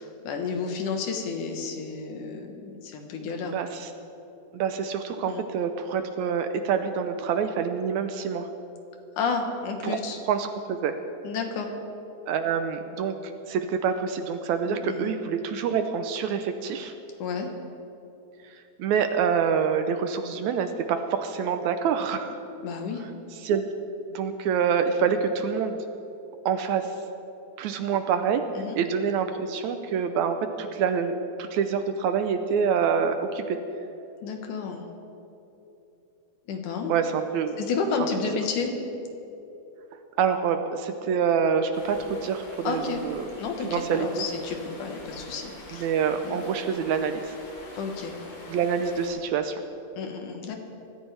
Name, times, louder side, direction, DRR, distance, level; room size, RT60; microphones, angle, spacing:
voice 1, 0.0-3.6 5.3-5.4 9.2-10.2 11.2-11.7 14.7-15.2 17.2-17.5 22.6-23.1 28.5-28.8 34.2-34.8 36.5-37.0 37.6-38.7 42.6-43.0 43.4-45.9 46.2-46.4 47.8-48.2 50.0-50.6, left 5 dB, 75° left, 4 dB, 2.8 m, -31 dB
voice 2, 3.5-3.9 4.5-8.5 9.8-10.0 10.3-10.9 12.3-16.9 18.8-22.4 23.4-23.6 24.1-25.8 26.5-26.9 27.6-28.4 28.8-33.6 36.9-37.6 40.2-43.2 43.7-44.1 45.7-47.3 48.5-49.6, right 7 dB, 75° right, 7 dB, 1.9 m, -26 dB
Stream, 41.7-49.1, left 1 dB, 55° left, 4.2 m, -45 dB
23.0 x 13.5 x 3.4 m, 2.9 s
omnidirectional pair, 3.7 m